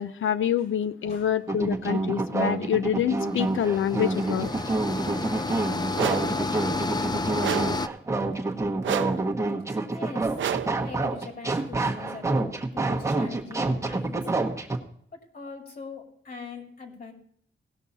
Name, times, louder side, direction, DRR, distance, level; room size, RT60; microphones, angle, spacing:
voice 1, 0.0-4.5, left 9 dB, 80° left, 14 dB, 0.7 m, -26 dB
sound 1, 1.5-14.8, right 2 dB, 15° right, 1.2 m, -28 dB
sound 2, 3.2-7.9, left 3 dB, 20° left, 0.4 m, -31 dB
sound 3, 5.9-6.4 7.4-7.9 8.8-9.3 10.4-10.8, right 10 dB, 75° right, 0.5 m, -30 dB
voice 2, 8.7-9.2 9.9-10.4 10.8-14.2 15.1-17.1, left 4 dB, 50° left, 2 dB, 2.3 m, -42 dB
17.5 x 6.4 x 4.1 m, 0.64 s
wide cardioid pair, 140°, 20 cm